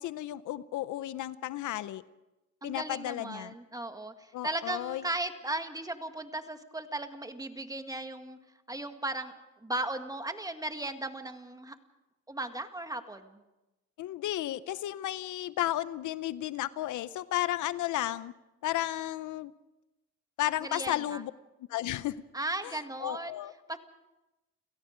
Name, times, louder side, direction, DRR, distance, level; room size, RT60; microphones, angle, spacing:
voice 1, 0.0-2.0 2.6-3.5 4.3-5.1 14.0-18.3 18.6-19.5 20.4-21.3 21.7-22.1 22.6-23.5, left 14 dB, 80° left, 16 dB, 0.8 m, -33 dB
voice 2, 2.6-4.1 4.4-8.4 8.7-9.3 9.6-11.8 12.3-13.4 20.6-21.2 22.3-23.4 23.7-23.8, right 2 dB, 10° right, 7 dB, 1.9 m, -36 dB
30.0 x 17.0 x 5.2 m, 0.98 s
cardioid pair, 90°, 30 cm